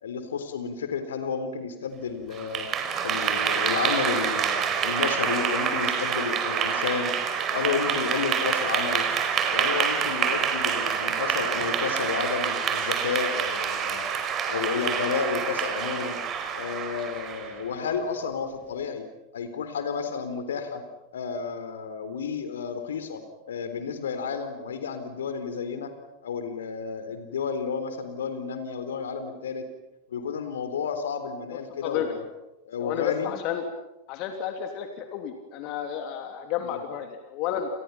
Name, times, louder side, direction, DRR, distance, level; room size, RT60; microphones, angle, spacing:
voice 1, 0.0-2.7 3.0-7.1 7.5-9.1 9.5-14.1 14.5-16.2 16.6-19.1 19.3-20.8 21.1-23.2 23.5-25.9 26.2-29.7 30.1-32.2 32.7-33.3 36.6-36.8, left 6 dB, 65° left, 9 dB, 3.9 m, -31 dB
Clapping / Applause, 2.3-17.6, right 7 dB, 30° right, 4.6 m, -27 dB
voice 2, 31.5-32.1 32.8-33.6 34.1-37.7, left 10 dB, 40° left, 5 dB, 3.0 m, -31 dB
30.0 x 29.5 x 5.8 m, 0.92 s
figure-of-eight pair, 90°, 0 cm